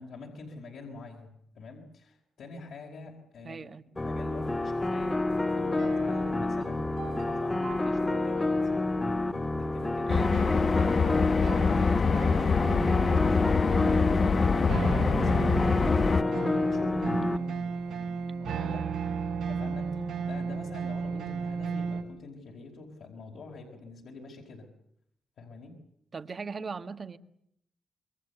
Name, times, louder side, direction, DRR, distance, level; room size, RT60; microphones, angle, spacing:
voice 1, 0.0-3.7 3.9-8.6 9.5-10.1 10.7-24.7 25.4-25.8, left 3 dB, 75° left, -1 dB, 5.0 m, -45 dB
voice 2, 3.4-3.8 10.1-10.4 26.1-27.2, right 5 dB, 40° right, 11 dB, 1.7 m, -38 dB
sound 1, 4.0-17.4, left 2 dB, 20° left, 1.7 m, -29 dB
sound 2, 5.7-22.0, right 5 dB, 90° right, 5.7 m, -35 dB
sound 3, 10.1-16.2, left 5 dB, 45° left, 1.1 m, -25 dB
27.5 x 22.5 x 8.1 m, 0.75 s
cardioid pair, 75°, 0 cm